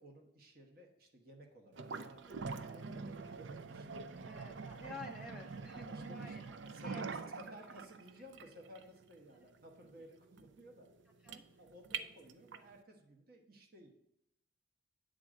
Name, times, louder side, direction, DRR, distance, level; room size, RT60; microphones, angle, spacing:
voice 1, 0.0-4.0 5.6-6.4 6.7-10.9 11.6-13.9, equal, 50° right, 2 dB, 1.2 m, -56 dB
sound 1, 1.7-12.7, right 4 dB, 75° right, 0.5 m, -45 dB
voice 2, 4.2-6.4 6.8-7.3 7.7-7.8 11.2-11.4, left 2 dB, 5° right, 2 dB, 0.4 m, -51 dB
8.4 x 3.8 x 6.3 m, 0.82 s
head